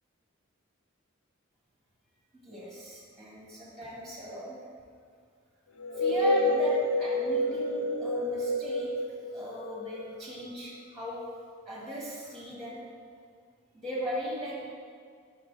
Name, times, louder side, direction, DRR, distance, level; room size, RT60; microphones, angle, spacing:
voice 1, 2.3-4.6 6.0-8.9 9.3-11.2 11.7-12.8 13.7-14.7, equal, ahead, -6 dB, 1.4 m, -37 dB
sound 1, 5.8-10.4, left 1 dB, 80° left, 0.6 m, -28 dB
5.4 x 4.7 x 5.2 m, 2.2 s
head